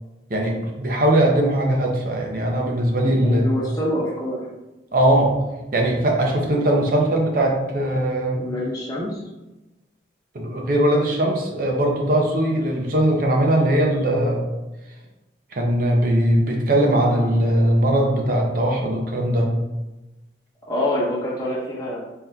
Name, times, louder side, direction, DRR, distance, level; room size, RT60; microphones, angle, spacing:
voice 1, 0.3-3.5 4.9-5.3 5.7-8.5 10.3-14.4 15.5-19.5, right 1 dB, 50° right, 0 dB, 0.6 m, -20 dB
voice 2, 3.0-4.4 6.5-6.6 8.4-9.2 17.1-17.4 17.9-18.0 20.7-22.0, left 1 dB, 20° left, -5 dB, 0.9 m, -26 dB
4.1 x 3.6 x 2.2 m, 1.0 s
head